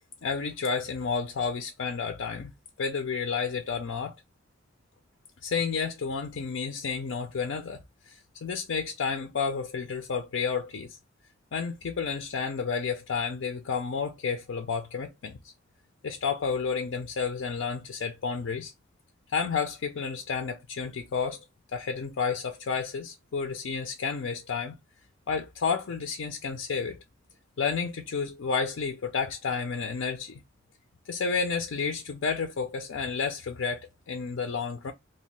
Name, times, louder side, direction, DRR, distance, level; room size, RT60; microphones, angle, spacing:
voice 1, 0.2-2.5 2.8-4.2 5.4-7.8 8.1-11.0 11.5-15.4 16.0-18.7 19.3-21.4 21.7-24.8 25.3-27.0 27.6-30.4 31.1-34.9, left 5 dB, 70° left, 0.5 m, -31 dB
2.9 x 2.8 x 3.1 m
head